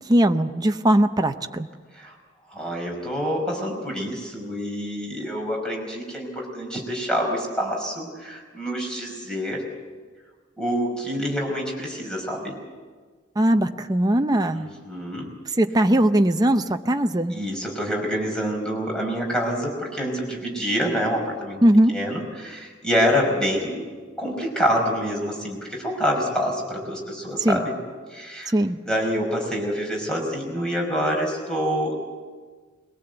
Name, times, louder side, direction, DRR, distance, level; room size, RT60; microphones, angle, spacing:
voice 1, 0.1-1.7 13.4-14.7 15.6-17.4 21.6-21.9 27.4-27.7 28.5-28.8, right 1 dB, 20° right, 6 dB, 0.7 m, -19 dB
voice 2, 2.5-9.6 10.6-12.6 14.5-15.3 17.3-21.6 21.9-23.9 24.2-27.7 28.1-28.5 28.9-32.0, equal, 5° left, 0 dB, 5.3 m, -26 dB
22.0 x 18.0 x 8.0 m, 1.5 s
head